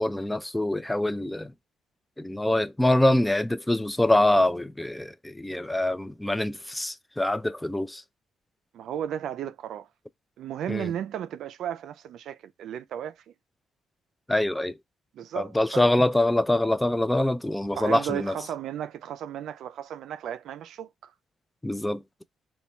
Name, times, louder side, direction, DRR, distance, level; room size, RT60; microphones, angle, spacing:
voice 1, 0.0-1.5 2.2-8.0 10.7-10.9 14.3-14.7 15.4-18.3 21.6-22.0, left 1 dB, 10° left, 0.3 m, -24 dB
voice 2, 8.7-9.9 10.4-13.3 15.1-15.9 17.7-21.1, right 10 dB, 75° right, 0.3 m, -34 dB
3.0 x 2.3 x 4.0 m
cardioid pair, 90°, 0 cm